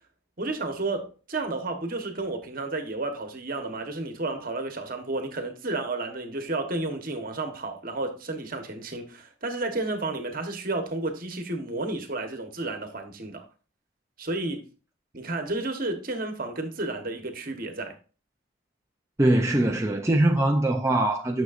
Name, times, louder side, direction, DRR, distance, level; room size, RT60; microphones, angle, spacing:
voice 1, 0.4-13.4 14.2-14.6 15.1-17.9, right 2 dB, 45° right, 1.2 m, -32 dB
voice 2, 19.2-21.4, right 1 dB, 15° right, 0.5 m, -22 dB
9.3 x 6.4 x 2.5 m
head